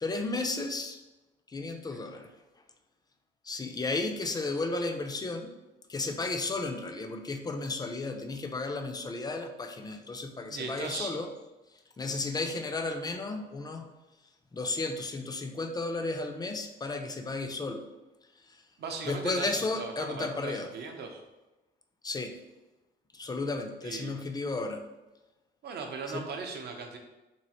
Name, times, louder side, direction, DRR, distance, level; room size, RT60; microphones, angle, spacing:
voice 1, 0.0-1.0 1.5-2.3 3.4-5.5 5.9-11.3 11.7-13.9 14.5-17.9 18.4-18.7 19.0-20.7 22.0-22.4 23.1-24.8 26.1-26.3, left 3 dB, 20° left, 5 dB, 0.4 m, -33 dB
voice 2, 10.5-11.1 18.8-21.2 23.8-24.1 25.6-27.0, right 4 dB, 55° right, 3 dB, 0.6 m, -38 dB
3.1 x 2.4 x 2.7 m, 1.1 s
cardioid pair, 90°, 20 cm